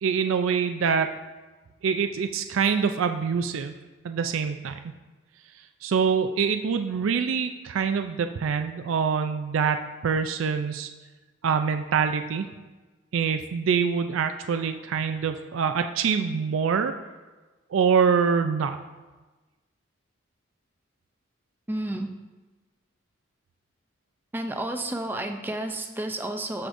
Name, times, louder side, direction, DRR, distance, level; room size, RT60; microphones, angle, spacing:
voice 1, 0.0-1.1 1.8-3.7 4.0-4.7 5.8-10.9 11.4-12.5 13.1-16.9 17.7-18.8, right 6 dB, 80° right, 8 dB, 0.4 m, -25 dB
voice 2, 21.7-22.1 24.3-26.7, right 1 dB, 10° right, 5 dB, 0.4 m, -31 dB
12.5 x 4.9 x 2.6 m, 1.2 s
head